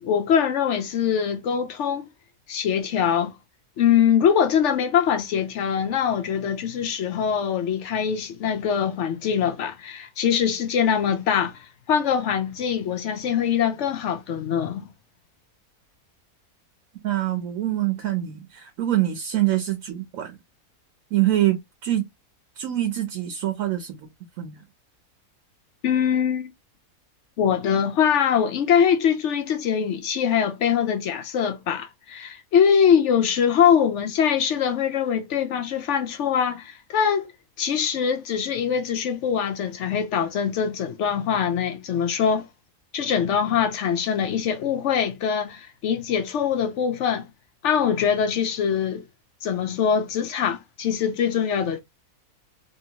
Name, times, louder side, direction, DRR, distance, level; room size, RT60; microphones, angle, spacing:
voice 1, 0.0-2.1 2.5-3.3 3.8-14.9 25.8-26.5 27.4-37.3 37.6-42.5 42.9-47.3 47.6-49.0 49.4-51.8, left 8 dB, 70° left, 0.7 m, -23 dB
voice 2, 17.0-20.4 21.1-21.6 21.8-22.0 22.6-24.1 24.4-24.6, right 14 dB, 70° right, 1.0 m, -25 dB
2.8 x 2.7 x 2.8 m
omnidirectional pair, 1.6 m